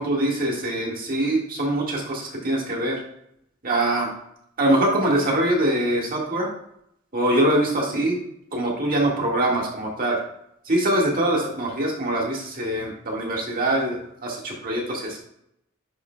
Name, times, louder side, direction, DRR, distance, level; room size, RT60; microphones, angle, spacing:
voice 1, 0.0-3.0 3.6-4.1 4.6-6.5 7.1-8.2 8.5-10.2 10.6-15.2, right 1 dB, 45° right, -1 dB, 1.7 m, -23 dB
10.0 x 5.0 x 2.3 m, 0.74 s
head